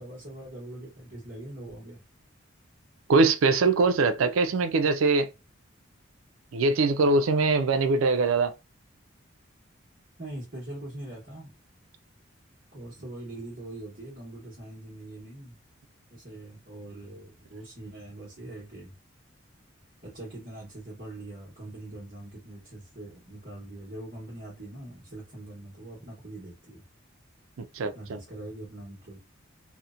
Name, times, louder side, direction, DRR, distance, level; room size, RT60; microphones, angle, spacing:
voice 1, 0.0-2.0 10.2-11.5 12.7-15.6 16.1-18.9 20.0-26.8 27.9-29.2, right 1 dB, 45° right, 1.0 m, -42 dB
voice 2, 3.1-5.3 6.5-8.5 27.7-28.2, right 3 dB, 80° right, 0.4 m, -22 dB
2.8 x 2.1 x 2.4 m
head